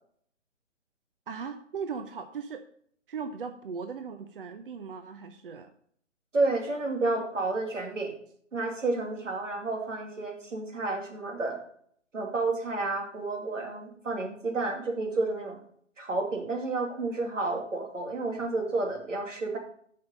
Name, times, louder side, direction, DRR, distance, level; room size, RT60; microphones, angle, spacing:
voice 1, 1.3-2.6 3.1-5.7, right 6 dB, 50° right, 8 dB, 0.7 m, -38 dB
voice 2, 6.3-8.1 8.5-11.6 12.1-15.6 16.0-19.6, right 3 dB, 85° right, 2 dB, 2.6 m, -30 dB
7.6 x 5.5 x 5.5 m, 0.62 s
hypercardioid pair, 160°, 37 cm